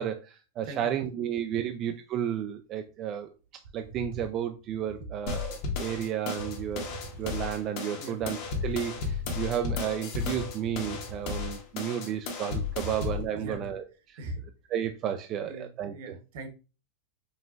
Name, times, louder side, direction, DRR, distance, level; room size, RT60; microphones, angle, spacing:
voice 1, 0.0-3.3 3.7-6.9 7.2-14.2 14.7-16.1, right 10 dB, 30° right, 6 dB, 0.3 m, -32 dB
voice 2, 0.6-1.1 1.5-1.7 5.0-5.1 7.9-8.2 13.3-13.7 14.2-14.4 15.4-16.5, right 2 dB, 60° right, 6 dB, 1.0 m, -41 dB
sound 1, 3.6-5.1 5.9-6.0 6.4-7.5 8.2-9.9 10.4-11.8 12.1-12.2 12.5-13.7, right 3 dB, 90° right, 1.3 m, -44 dB
sound 2, 5.3-13.3, left 5 dB, 50° left, 1.2 m, -34 dB
5.4 x 2.9 x 2.5 m, 0.32 s
supercardioid pair, 160°, 0 cm